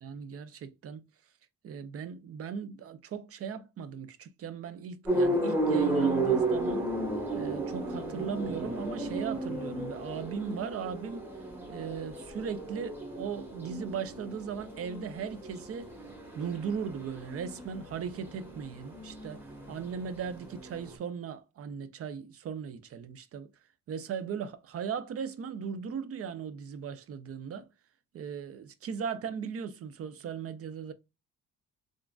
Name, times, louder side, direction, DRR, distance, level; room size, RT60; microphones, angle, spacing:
voice 1, 0.0-1.1 1.6-6.8 7.3-11.3 11.7-15.9 16.4-23.5 23.9-27.7 28.1-30.9, right 6 dB, 50° right, 0.6 m, -38 dB
sound 1, 5.0-20.9, right 2 dB, 5° right, 1.2 m, -33 dB
3.6 x 2.5 x 2.3 m
cardioid pair, 90°, 30 cm